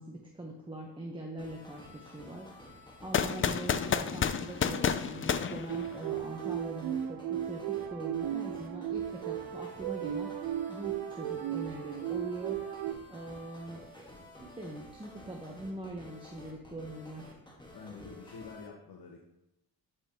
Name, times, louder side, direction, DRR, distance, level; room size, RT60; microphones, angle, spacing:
voice 1, 0.0-12.7 13.1-14.1 14.4-17.3, right 2 dB, 10° right, 0 dB, 0.9 m, -43 dB
sound 1, 1.4-18.7, left 1 dB, 10° left, 1.3 m, -52 dB
sound 2, 3.1-6.3, left 7 dB, 30° left, 0.4 m, -30 dB
sound 3, 5.7-12.9, right 11 dB, 65° right, 0.6 m, -35 dB
voice 2, 17.7-19.2, left 4 dB, 55° left, 1 dB, 1.1 m, -47 dB
8.3 x 5.0 x 2.9 m, 0.88 s
cardioid pair, 85°, 44 cm